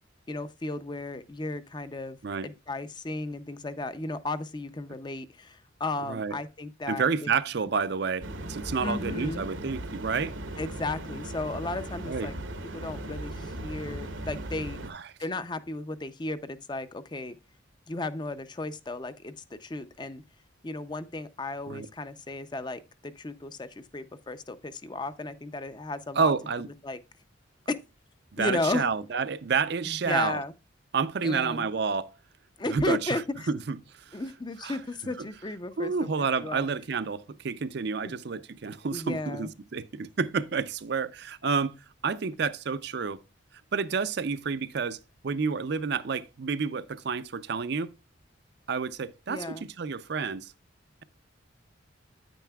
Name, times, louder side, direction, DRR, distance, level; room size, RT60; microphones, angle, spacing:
voice 1, 0.3-2.2 2.4-7.3 8.8-9.4 10.6-12.4 12.6-14.8 15.2-17.4 17.9-19.3 19.6-20.2 20.6-26.3 26.6-27.0 27.7-27.8 28.4-28.9 29.9-30.5 31.2-31.7 32.6-33.5 34.1-36.1 36.4-36.7 38.0-38.1 38.9-39.5 49.3-49.7, left 2 dB, 20° left, 0.5 m, -34 dB
voice 2, 6.9-10.4 12.1-12.3 14.8-15.0 21.7-21.9 26.2-26.7 28.3-30.4 30.9-32.1 32.7-33.2 33.5-33.8 34.1-34.2 34.6-34.8 35.8-43.2 43.7-45.0 45.2-47.9 48.7-50.5, right 5 dB, 55° right, 0.5 m, -29 dB
sound 1, 8.2-14.9, right 1 dB, 75° right, 1.1 m, -38 dB
9.3 x 9.0 x 2.3 m
head